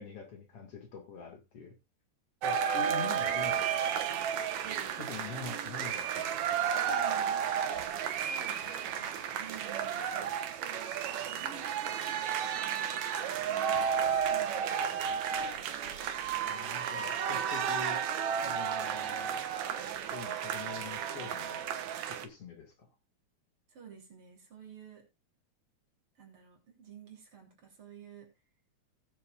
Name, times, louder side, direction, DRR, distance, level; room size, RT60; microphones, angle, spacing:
voice 1, 0.0-1.7 2.4-3.7 5.0-6.4 15.1-15.2 16.4-18.1 18.4-19.4 20.1-21.7 22.1-22.9, left 5 dB, 55° left, 3 dB, 2.8 m, -45 dB
encore cheering, 2.4-22.3, right 8 dB, 75° right, 2.4 m, -32 dB
voice 2, 4.6-5.9 6.9-7.5 8.1-15.6 17.2-17.5 23.7-25.0 26.2-28.3, right 7 dB, 45° right, 0 dB, 4.1 m, -52 dB
18.0 x 7.5 x 2.4 m, 0.24 s
omnidirectional pair, 3.4 m